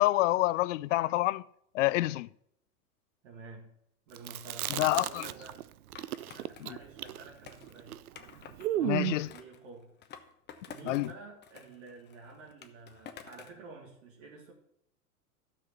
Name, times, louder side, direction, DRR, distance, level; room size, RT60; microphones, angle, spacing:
voice 1, 0.0-1.4 1.7-2.3 4.8-5.2 8.8-9.3 10.9-11.1, left 17 dB, 55° left, 0.5 m, -27 dB
voice 2, 3.2-3.7 4.1-5.7 6.3-8.0 8.7-10.0 10.7-14.5, right 4 dB, 50° right, 2.0 m, -49 dB
Chewing mastication, 4.2-5.6 5.9-9.3, right 14 dB, 70° right, 0.6 m, -34 dB
Skateboard, 6.0-8.7 9.3-11.1 11.4-13.6, left 8 dB, 25° left, 1.0 m, -51 dB
12.5 x 6.1 x 6.8 m
hypercardioid pair, 100°, 45 cm